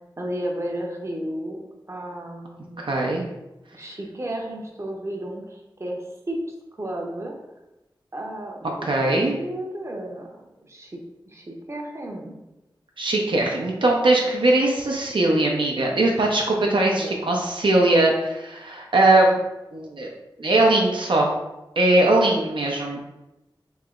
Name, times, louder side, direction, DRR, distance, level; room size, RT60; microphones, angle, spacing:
voice 1, 0.2-1.6 1.9-2.8 3.7-6.4 6.8-7.3 8.1-10.3 10.6-11.0 11.3-12.4 16.7-17.2, right 1 dB, 35° right, 0 dB, 0.7 m, -33 dB
voice 2, 2.8-3.2 8.8-9.3 13.0-19.4 19.7-20.1 20.4-21.3 21.8-23.0, right 2 dB, 70° right, -1 dB, 0.6 m, -20 dB
3.2 x 2.9 x 3.6 m, 0.98 s
wide cardioid pair, 65°, 9 cm